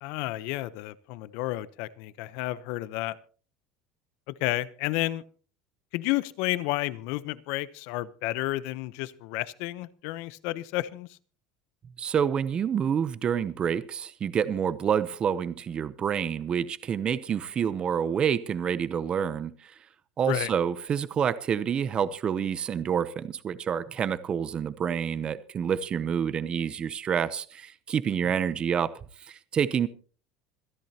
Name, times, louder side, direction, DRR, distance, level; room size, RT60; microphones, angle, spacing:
voice 1, 0.0-3.2 4.3-5.2 5.9-11.2 20.2-20.5 28.2-28.3, left 17 dB, 70° left, 16 dB, 0.8 m, -31 dB
voice 2, 12.0-19.7 20.2-28.9 29.2-29.9, right 8 dB, 30° right, 16 dB, 0.7 m, -28 dB
26.5 x 10.5 x 2.9 m, 0.40 s
supercardioid pair, 125°, 3 cm